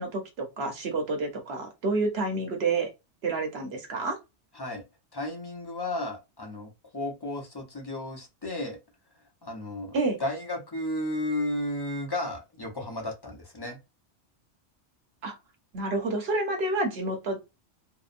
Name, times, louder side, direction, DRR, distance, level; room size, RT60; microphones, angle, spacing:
voice 1, 0.0-2.9 3.2-4.2 9.9-10.2 15.2-15.3 15.7-17.4, right 3 dB, 60° right, 4 dB, 1.0 m, -29 dB
voice 2, 5.1-8.8 9.4-13.8, left 1 dB, 35° left, 1 dB, 0.4 m, -33 dB
2.8 x 2.0 x 2.4 m, 0.24 s
omnidirectional pair, 1.2 m